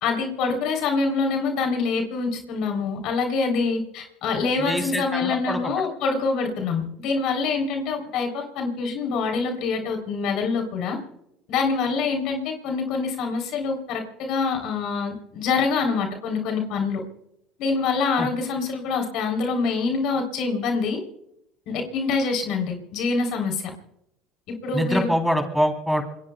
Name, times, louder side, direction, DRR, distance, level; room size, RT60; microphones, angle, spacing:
voice 1, 0.0-11.0 11.5-17.0 17.6-21.0 21.7-23.7 24.6-25.1, left 4 dB, 65° left, 2 dB, 3.4 m, -25 dB
voice 2, 4.6-5.7 18.2-18.3 24.7-26.0, equal, ahead, 4 dB, 3.4 m, -24 dB
27.0 x 21.5 x 2.3 m, 0.81 s
hypercardioid pair, 80°, 0 cm